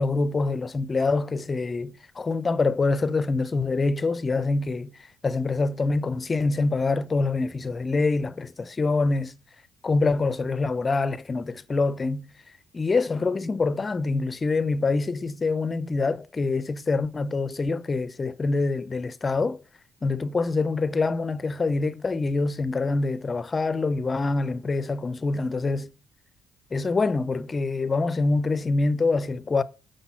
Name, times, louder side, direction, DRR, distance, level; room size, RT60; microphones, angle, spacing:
voice 1, 0.0-4.9 5.2-9.3 9.8-12.3 12.7-19.6 20.0-25.9 26.7-29.6, left 3 dB, 30° left, 0.5 m, -25 dB
5.9 x 5.1 x 5.6 m
supercardioid pair, 75°, 0 cm